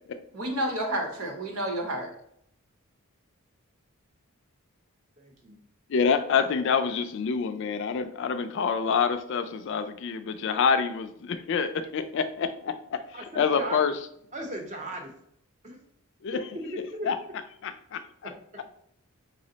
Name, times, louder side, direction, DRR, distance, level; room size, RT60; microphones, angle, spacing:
voice 1, 0.3-2.1, right 1 dB, 75° right, 2 dB, 1.0 m, -30 dB
voice 2, 5.2-5.6 13.1-13.8 14.3-15.1 15.6-15.8 16.9-17.1 18.2-18.3, right 1 dB, 35° right, 2 dB, 0.8 m, -37 dB
voice 3, 5.9-13.0 13.3-13.9 16.2-16.5 17.0-17.2 17.6-18.3, left 6 dB, 55° left, 10 dB, 0.3 m, -27 dB
5.3 x 2.1 x 3.8 m, 0.70 s
head